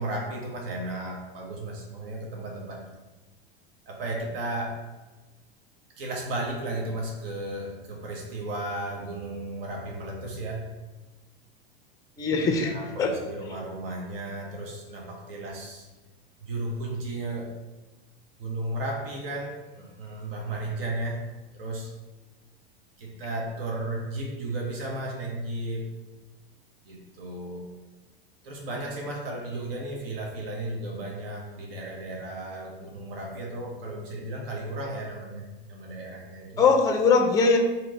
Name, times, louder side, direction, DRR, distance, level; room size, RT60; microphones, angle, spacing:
voice 1, 0.0-2.9 3.9-4.8 6.0-10.7 12.2-15.9 16.4-17.6 18.4-21.2 21.5-21.9 23.0-25.9 26.8-27.7 28.4-36.6, right 1 dB, 75° right, -1 dB, 0.8 m, -34 dB
voice 2, 12.2-12.7 13.0-13.1 36.6-37.6, left 4 dB, 10° left, 4 dB, 0.4 m, -20 dB
2.9 x 2.8 x 4.0 m, 1.2 s
hypercardioid pair, 95°, 29 cm